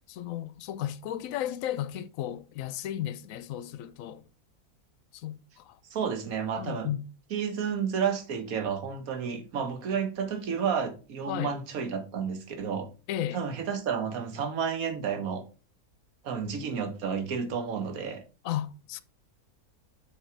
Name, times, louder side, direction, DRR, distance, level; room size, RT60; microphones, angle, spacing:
voice 1, 0.1-4.2 5.1-5.8 6.6-7.0 11.3-11.5 13.1-13.4 18.4-19.0, left 11 dB, 65° left, 0.9 m, -34 dB
voice 2, 5.9-6.9 7.3-12.9 13.3-15.4 16.2-18.2, right 6 dB, 65° right, 1.6 m, -31 dB
6.6 x 4.8 x 4.5 m
omnidirectional pair, 1.6 m